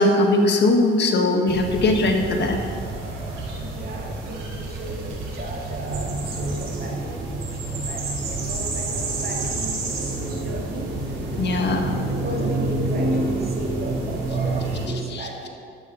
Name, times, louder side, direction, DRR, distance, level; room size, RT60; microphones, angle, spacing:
voice 1, 0.0-2.6 11.4-11.9 15.1-15.3, left 2 dB, 60° left, 3 dB, 1.6 m, -20 dB
sound 1, 1.5-14.9, right 2 dB, 90° right, 2.3 m, -28 dB
voice 2, 3.6-10.9 11.6-11.7 12.1-15.5, right 1 dB, 50° right, 0 dB, 2.3 m, -35 dB
11.5 x 8.4 x 5.7 m, 2.4 s
cardioid pair, 90°, 20 cm